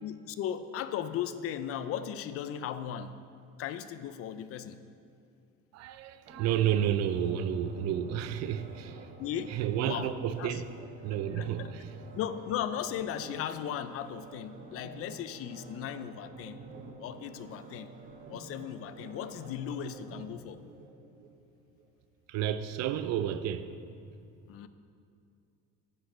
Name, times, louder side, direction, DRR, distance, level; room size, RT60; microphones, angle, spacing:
voice 1, 0.0-3.2 3.6-4.8 9.2-10.6 11.4-11.7 12.2-16.6 17.0-17.9 18.3-20.6 24.5-24.7, left 9 dB, 50° left, 12 dB, 0.4 m, -37 dB
voice 2, 5.7-9.1 9.5-10.7 11.0-11.9 22.3-23.7, right 10 dB, 60° right, 12 dB, 0.5 m, -31 dB
sound 1, 6.3-21.3 21.7-21.9, right 3 dB, 25° right, 1.0 m, -49 dB
10.5 x 9.6 x 3.2 m, 2.4 s
cardioid pair, 155°, 30 cm